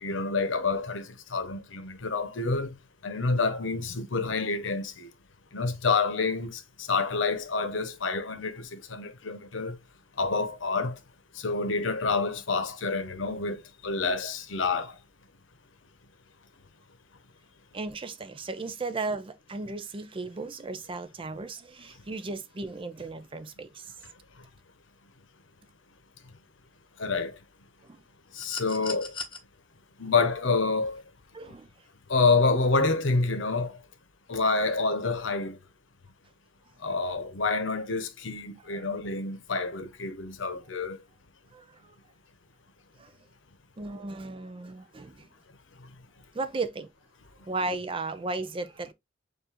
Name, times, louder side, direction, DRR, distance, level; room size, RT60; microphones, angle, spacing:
voice 1, 0.0-1.1 1.3-2.7 3.0-5.1 5.5-9.8 10.2-11.0 11.4-14.9 27.0-27.3 28.4-29.1 30.0-31.0 32.1-33.7 34.3-35.6 36.8-41.0, left 4 dB, 80° left, 0.8 m, -28 dB
voice 2, 17.7-23.9 27.8-28.0 31.3-31.7 36.9-37.1 38.7-38.9 41.5-42.0 43.0-43.1 43.8-45.3 46.3-46.9 47.4-48.9, right 3 dB, 25° right, 0.5 m, -35 dB
sound 1, 28.3-29.4 30.9-31.0, left 4 dB, 25° left, 0.9 m, -37 dB
6.8 x 2.6 x 2.9 m
head